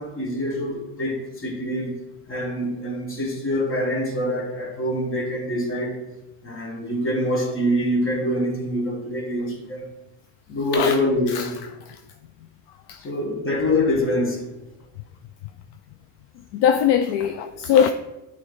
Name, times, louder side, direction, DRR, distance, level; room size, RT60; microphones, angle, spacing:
voice 1, 0.0-2.0 2.3-6.0 6.4-9.9 10.5-11.5 13.0-14.5, left 1 dB, 25° left, 1.5 m, -25 dB
voice 2, 16.5-17.9, left 8 dB, 60° left, 0.5 m, -20 dB
9.1 x 3.2 x 3.9 m
cardioid pair, 130°, 46 cm